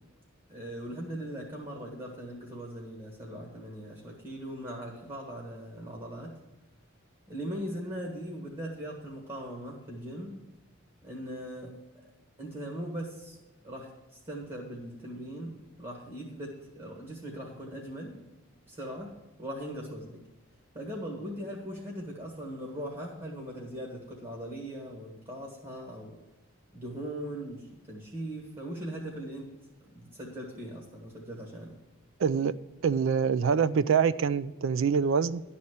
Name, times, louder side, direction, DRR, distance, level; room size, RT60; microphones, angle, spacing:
voice 1, 0.5-6.3 7.3-10.3 11.0-11.7 12.4-13.4 13.6-15.5 15.8-18.2 18.7-20.2 20.7-26.2 26.7-29.5 29.9-31.8, right 1 dB, 30° right, -1 dB, 1.7 m, -40 dB
voice 2, 32.2-32.5 32.8-35.4, right 6 dB, 60° right, 16 dB, 0.3 m, -25 dB
12.0 x 4.2 x 8.0 m, 1.1 s
head